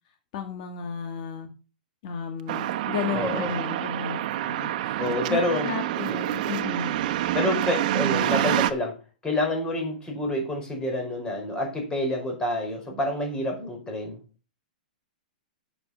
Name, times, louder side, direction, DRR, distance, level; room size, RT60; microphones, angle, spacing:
voice 1, 0.3-1.5 2.0-5.0 5.3-5.4 5.6-6.9, left 7 dB, 55° left, 4 dB, 2.1 m, -33 dB
sound 1, 2.5-8.7, right 13 dB, 55° right, 1.0 m, -27 dB
voice 2, 3.1-3.5 5.0-5.7 6.1-6.2 7.3-9.0 9.2-14.2, left 1 dB, 15° left, 2 dB, 4.8 m, -28 dB
8.0 x 7.7 x 5.9 m, 0.32 s
hypercardioid pair, 125°, 5 cm